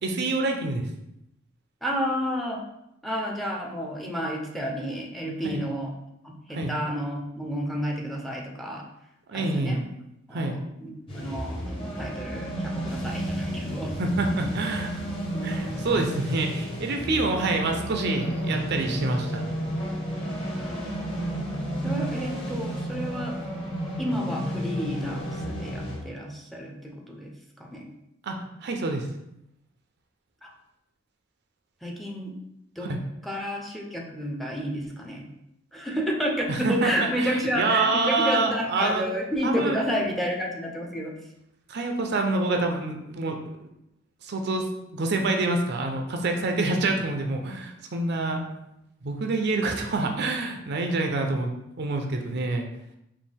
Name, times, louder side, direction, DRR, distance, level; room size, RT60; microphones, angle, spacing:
voice 1, 0.0-0.8 5.4-5.6 6.5-6.7 9.3-9.8 10.3-10.6 14.0-14.9 15.4-19.5 28.2-28.4 28.6-29.0 32.8-33.0 36.5-39.0 39.4-40.1 41.7-43.4 44.2-44.7 44.9-48.4 49.0-51.5 51.8-52.7, right 2 dB, 55° right, 4 dB, 0.5 m, -27 dB
voice 2, 1.8-2.6 3.0-5.9 6.2-8.8 9.3-9.9 10.3-13.9 20.4-21.4 21.8-23.3 24.0-27.9 30.4-30.5 31.8-32.3 32.8-32.9 33.2-35.3 35.7-41.1, equal, ahead, 0 dB, 0.6 m, -31 dB
sound 1, 11.1-26.0, equal, 25° left, 1.0 m, -32 dB
5.3 x 2.5 x 3.3 m, 0.84 s
head